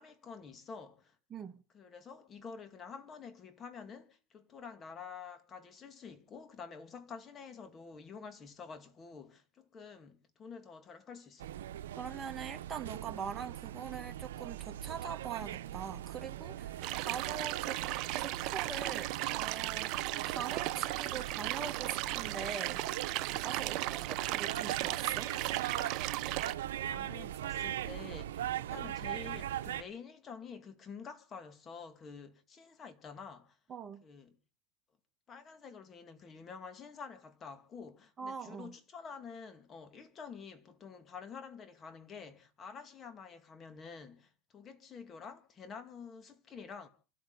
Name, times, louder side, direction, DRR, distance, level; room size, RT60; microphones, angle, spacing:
voice 1, 0.0-1.2 1.7-11.5 26.4-26.5 26.8-33.6 34.0-34.4 35.3-46.9, left 5 dB, 30° left, 2.2 m, -49 dB
voice 2, 1.3-1.6 12.0-17.8 18.2-23.1 23.4-25.3 33.7-34.0 38.2-38.7, right 7 dB, 25° right, 1.4 m, -43 dB
sound 1, 11.4-29.8, right 12 dB, 85° right, 0.8 m, -41 dB
sound 2, 16.8-26.6, right 17 dB, 55° right, 0.8 m, -36 dB
27.0 x 13.0 x 4.0 m
supercardioid pair, 110°, 0 cm